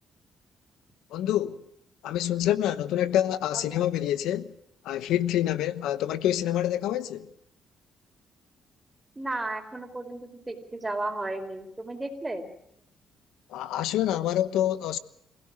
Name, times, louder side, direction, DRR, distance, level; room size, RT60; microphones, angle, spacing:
voice 1, 1.1-1.6 2.0-4.5 4.8-7.3 13.5-15.0, left 12 dB, 90° left, 1.0 m, -27 dB
voice 2, 9.2-12.5, right 2 dB, 15° right, 4.6 m, -34 dB
27.5 x 16.5 x 7.5 m
cardioid pair, 90°, 0 cm